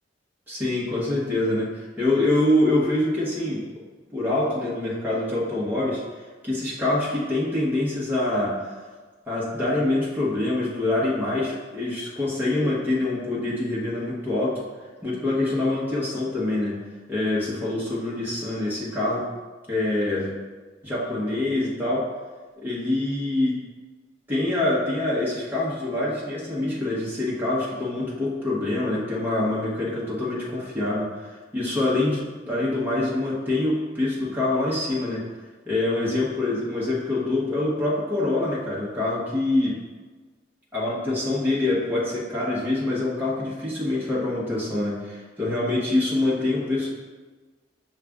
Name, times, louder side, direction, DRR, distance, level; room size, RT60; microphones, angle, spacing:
voice 1, 0.5-1.7 2.0-3.6 4.1-6.0 6.4-8.6 9.3-14.6 15.0-16.8 17.1-19.3 19.7-20.3 20.8-22.1 22.6-23.6 24.3-35.2 35.7-39.8 40.7-46.9, left 2 dB, 10° right, -7 dB, 1.0 m, -25 dB
6.2 x 2.5 x 3.5 m, 1.4 s
head